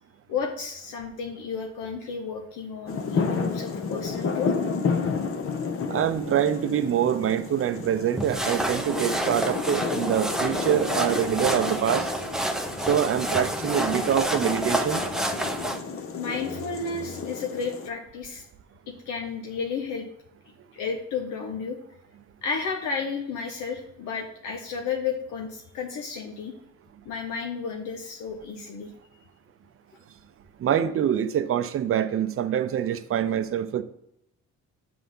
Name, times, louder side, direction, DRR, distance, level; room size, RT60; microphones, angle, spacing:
voice 1, 0.3-4.5 16.1-18.4 18.9-20.1 20.7-21.8 22.4-26.5 27.1-28.9, left 5 dB, 85° left, 0.8 m, -32 dB
sound 1, 2.9-17.9, left 5 dB, 45° left, 0.8 m, -32 dB
voice 2, 5.9-12.1 12.9-15.0 30.6-33.8, right 9 dB, 45° right, 0.5 m, -25 dB
sound 2, 8.2-15.8, right 1 dB, ahead, 0.6 m, -29 dB
7.6 x 3.4 x 5.4 m
cardioid pair, 90°, 30 cm